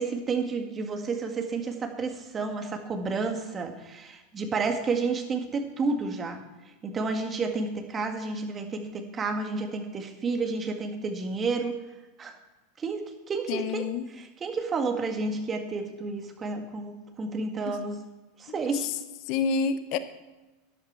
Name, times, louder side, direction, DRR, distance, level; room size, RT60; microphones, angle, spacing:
voice 1, 0.0-6.4 6.8-11.8 12.2-12.3 12.8-18.0 18.4-18.9, right 4 dB, 25° right, 4 dB, 1.9 m, -31 dB
voice 2, 13.5-14.0 18.5-18.6 19.3-20.0, left 5 dB, 50° left, 12 dB, 0.8 m, -28 dB
12.5 x 10.5 x 4.6 m, 1.1 s
figure-of-eight pair, 85°, 0 cm